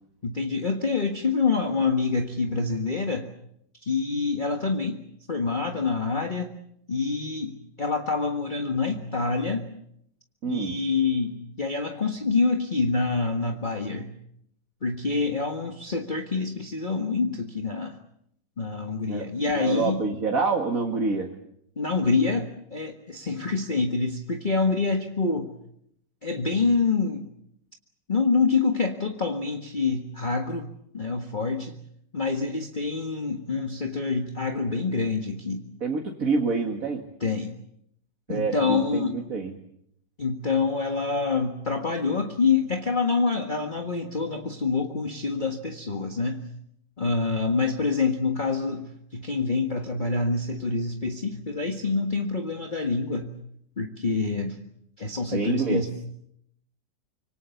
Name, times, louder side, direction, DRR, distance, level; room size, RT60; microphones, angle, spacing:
voice 1, 0.2-3.3 3.8-5.0 5.3-6.5 6.9-9.7 10.4-14.1 14.8-18.0 18.6-20.0 21.8-25.5 26.2-27.3 28.1-31.8 32.1-35.6 37.2-37.5 38.3-39.1 40.2-46.4 47.0-53.3 53.8-54.6 55.0-55.9, left 4 dB, 25° left, 4 dB, 1.6 m, -26 dB
voice 2, 10.4-10.8 19.1-19.3 19.5-21.3 35.8-37.0 38.3-39.5 55.3-55.8, right 4 dB, 50° right, 2 dB, 2.3 m, -27 dB
26.5 x 24.5 x 7.1 m, 0.73 s
omnidirectional pair, 2.0 m